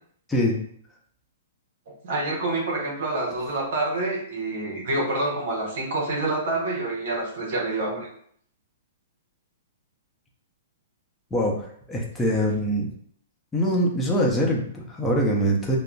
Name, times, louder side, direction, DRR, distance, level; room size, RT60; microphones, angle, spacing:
voice 1, 2.0-8.1, right 2 dB, 60° right, -2 dB, 0.7 m, -27 dB
voice 2, 11.3-12.9 13.5-15.8, equal, 10° left, -2 dB, 0.6 m, -23 dB
3.6 x 2.0 x 2.3 m, 0.63 s
hypercardioid pair, 120°, 0 cm